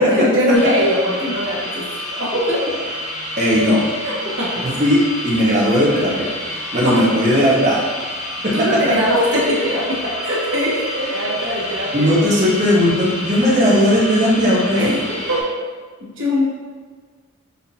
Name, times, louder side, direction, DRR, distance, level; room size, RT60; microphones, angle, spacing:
voice 1, 0.0-1.8 2.1-2.6 4.0-4.5 8.5-12.2 14.8-14.9 15.3-15.4 16.0-16.4, equal, 70° right, -7 dB, 1.4 m, -21 dB
sound 1, 0.5-15.4, equal, 35° left, 0.8 m, -29 dB
voice 2, 3.4-3.8 4.6-6.3 6.7-7.8 8.4-8.8 11.9-15.0, equal, 35° right, -5 dB, 1.1 m, -16 dB
5.5 x 2.9 x 2.8 m, 1.5 s
head